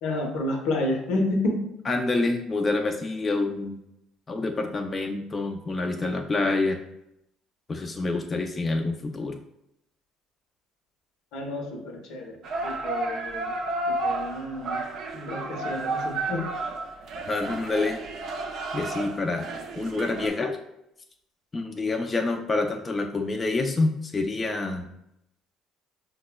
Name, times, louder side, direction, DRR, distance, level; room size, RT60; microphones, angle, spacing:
voice 1, 0.0-1.7 11.3-12.4 12.6-13.5 13.9-14.8 15.1-16.5, left 2 dB, 80° left, 2 dB, 0.7 m, -30 dB
voice 2, 1.9-3.8 4.3-6.8 7.7-9.4 17.3-18.0 18.7-19.5 19.8-20.6 21.5-24.9, left 3 dB, 30° left, 3 dB, 0.4 m, -27 dB
sound 1, 12.4-20.3, right 2 dB, 65° right, 0.4 m, -32 dB
5.0 x 2.0 x 2.2 m, 0.80 s
supercardioid pair, 80°, 0 cm